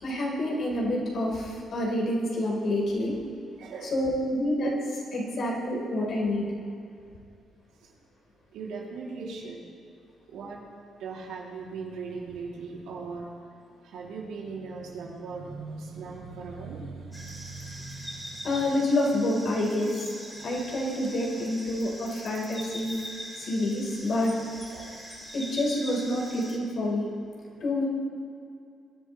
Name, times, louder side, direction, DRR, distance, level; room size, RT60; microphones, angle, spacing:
voice 1, 0.0-3.1 3.9-4.7 5.1-6.4 18.4-20.0 20.4-22.9 23.5-24.3 25.3-27.1 27.6-27.8, left 1 dB, 65° left, -3 dB, 4.1 m, -27 dB
voice 2, 3.6-3.9 8.5-9.6 10.3-10.6 11.0-13.5 13.8-18.8 20.4-20.6 24.7-24.9 27.5-27.6, right 4 dB, 85° right, -3 dB, 2.9 m, -39 dB
sound 1, 17.1-26.6, equal, ahead, 4.0 m, -42 dB
23.0 x 11.0 x 3.3 m, 2.4 s
cardioid pair, 90°, 0 cm